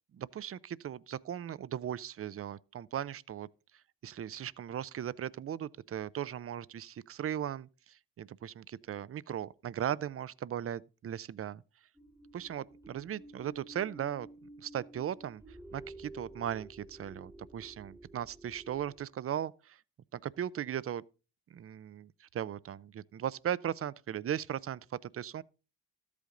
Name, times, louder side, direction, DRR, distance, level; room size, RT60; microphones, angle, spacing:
voice 1, 0.1-3.5 3.7-11.6 12.3-19.8 20.1-21.0 21.5-25.4, right 10 dB, 40° right, 0.5 m, -38 dB
sound 1, 11.9-19.0, right 2 dB, 10° right, 1.2 m, -52 dB
13.0 x 8.4 x 3.8 m
cardioid pair, 80°, 38 cm